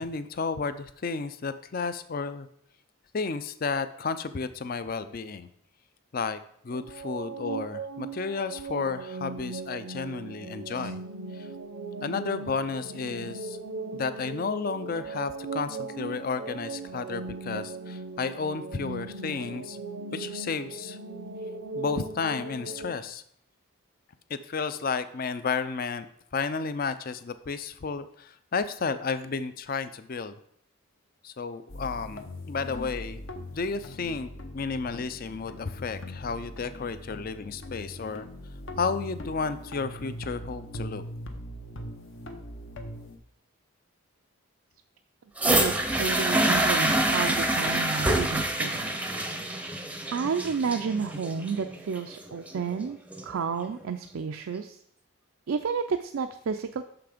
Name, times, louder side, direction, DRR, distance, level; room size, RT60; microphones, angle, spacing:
voice 1, 0.0-2.5 3.1-5.5 6.1-6.4 6.6-11.0 11.3-11.5 12.0-13.6 13.9-19.8 20.1-21.0 21.7-23.2 24.3-26.1 26.3-30.3 31.2-33.2 33.5-38.3 38.8-41.0, left 4 dB, 40° left, 12 dB, 0.4 m, -32 dB
sound 1, 6.7-22.9, right 4 dB, 85° right, 0.8 m, -38 dB
sound 2, 31.7-43.2, left 1 dB, 60° left, 0.8 m, -41 dB
sound 3, 45.4-53.4 54.2-54.3, right 1 dB, 5° right, 0.6 m, -26 dB
voice 2, 45.5-48.8 50.1-53.0 53.2-54.8 55.5-56.8, right 5 dB, 70° right, 7 dB, 0.4 m, -31 dB
6.8 x 5.9 x 5.0 m, 0.68 s
head